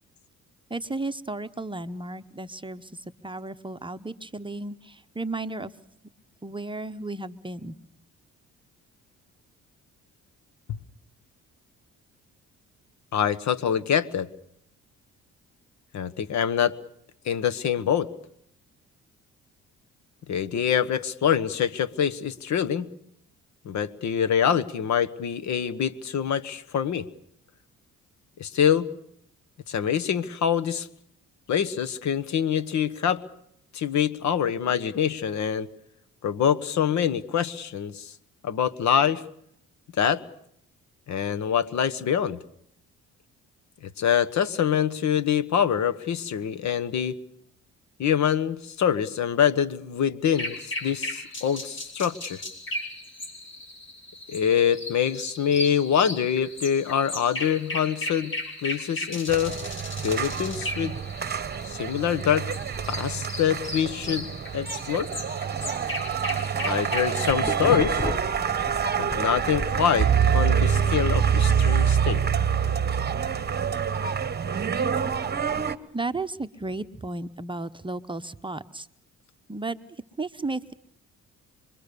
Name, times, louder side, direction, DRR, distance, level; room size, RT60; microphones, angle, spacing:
voice 1, 0.7-5.7 6.4-7.8 75.9-78.9 79.5-79.8 80.2-80.7, right 2 dB, 15° right, 10 dB, 0.9 m, -34 dB
voice 2, 13.1-14.3 15.9-16.8 17.2-18.1 20.3-22.9 23.6-27.0 28.4-28.9 29.7-30.9 31.5-33.2 33.7-35.7 36.2-38.1 38.4-39.2 40.0-40.2 41.1-42.4 43.8-47.2 48.0-52.4 54.3-58.3 58.6-59.6 60.0-60.9 61.7-62.6 62.9-65.1 66.6-68.1 69.0-72.2, left 8 dB, 65° left, 13 dB, 1.3 m, -25 dB
sound 1, 50.3-67.3, left 1 dB, 40° left, 6.1 m, -36 dB
sound 2, 59.3-75.8, right 7 dB, 35° right, 1.2 m, -26 dB
sound 3, 66.8-69.2 69.5-71.9, left 4 dB, 20° left, 1.1 m, -34 dB
26.5 x 22.5 x 6.9 m, 0.72 s
cardioid pair, 90°, 30 cm